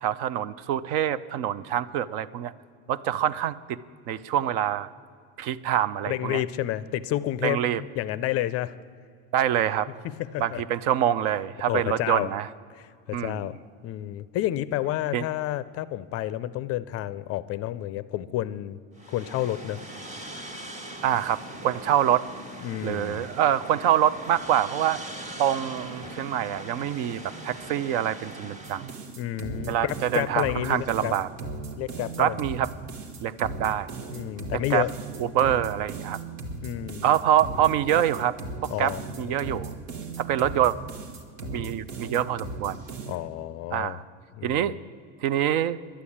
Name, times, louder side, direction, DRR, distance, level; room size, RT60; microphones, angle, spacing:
voice 1, 0.0-2.5 2.9-3.8 4.1-4.9 5.4-6.4 7.4-7.8 9.3-9.9 10.4-12.5 13.1-13.5 15.1-15.2 21.0-22.3 22.8-25.0 25.4-28.9 29.7-31.3 32.2-32.7 33.2-33.9 34.7-34.8 35.2-36.2 37.0-38.3 38.6-39.7 40.2-40.8 41.5-42.8 43.7-44.0 44.4-44.7 45.2-45.8, right 10 dB, 65° right, 17 dB, 0.6 m, -25 dB
voice 2, 6.1-8.7 10.0-10.6 11.7-12.3 12.7-13.6 13.8-18.8 19.1-19.8 22.6-23.3 29.2-31.1 31.8-32.4 34.1-34.9 36.6-37.2 38.7-39.3 43.1-44.0 44.4-44.7, left 13 dB, 40° left, 16 dB, 0.4 m, -30 dB
sound 1, 19.0-29.1, right 1 dB, 20° right, 1.4 m, -41 dB
sound 2, 28.6-43.2, right 3 dB, 90° right, 1.8 m, -37 dB
11.5 x 9.7 x 8.5 m, 2.2 s
supercardioid pair, 140°, 38 cm